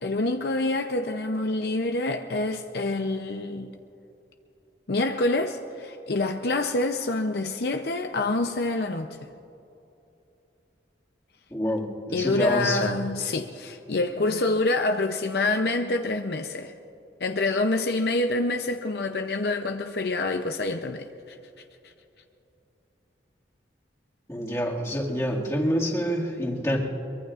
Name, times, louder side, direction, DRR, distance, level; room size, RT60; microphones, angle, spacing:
voice 1, 0.0-3.8 4.9-9.3 12.1-16.7 17.2-21.4 21.8-21.9, left 2 dB, 60° left, 0.6 m, -27 dB
voice 2, 11.5-12.9 24.3-26.8, equal, 15° left, 2.0 m, -27 dB
23.5 x 22.5 x 2.5 m
head